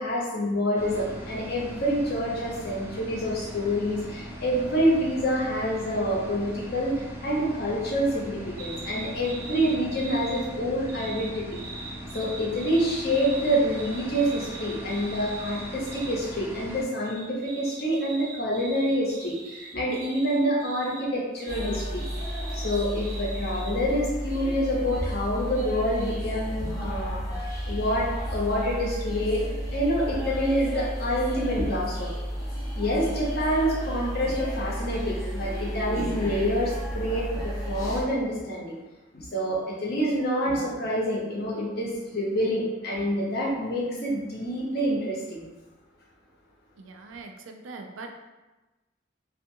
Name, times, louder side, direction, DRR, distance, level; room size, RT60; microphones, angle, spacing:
voice 1, 0.0-6.9 7.2-11.6 12.1-22.0 22.5-27.2 27.7-29.4 29.7-32.1 32.7-38.7 39.1-45.5, equal, 55° left, -4 dB, 0.7 m, -27 dB
sound 1, 0.8-16.8, equal, 15° right, 0.4 m, -40 dB
sound 2, 8.6-10.4 10.9-16.2 17.0-21.0 21.4-23.7, right 3 dB, 50° right, 0.7 m, -42 dB
sound 3, 21.5-38.0, equal, 20° left, 0.7 m, -32 dB
voice 2, 46.8-48.3, right 3 dB, 85° right, 4 dB, 0.4 m, -42 dB
2.6 x 2.4 x 2.6 m, 1.1 s
head